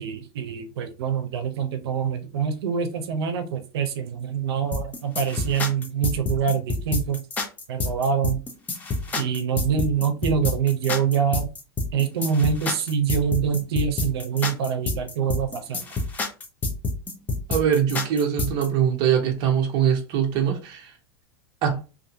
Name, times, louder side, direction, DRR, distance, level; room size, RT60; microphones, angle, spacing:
voice 1, 0.0-7.2 7.7-8.4 9.2-11.5 11.9-15.8, right 7 dB, 80° right, 0.6 m, -25 dB
sound 1, 4.7-18.7, left 3 dB, 10° left, 0.4 m, -28 dB
voice 2, 17.5-20.9 21.6-21.8, right 8 dB, 35° right, 0.7 m, -22 dB
2.5 x 2.5 x 2.6 m
supercardioid pair, 165°, 13 cm